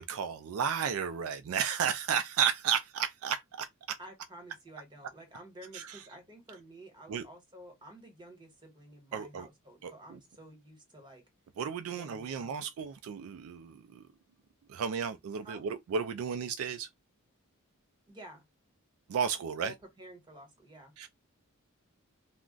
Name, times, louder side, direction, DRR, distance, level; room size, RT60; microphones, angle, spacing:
voice 1, 0.0-4.0 5.7-6.0 7.1-7.3 9.1-9.5 9.8-10.2 11.6-14.1 14.7-16.9 19.1-19.7 21.0-21.1, right 7 dB, 70° right, 0.3 m, -33 dB
voice 2, 4.0-11.2 11.8-12.7 15.4-15.6 18.1-18.4 19.6-20.9, right 1 dB, 20° right, 1.3 m, -51 dB
2.4 x 2.1 x 3.7 m
head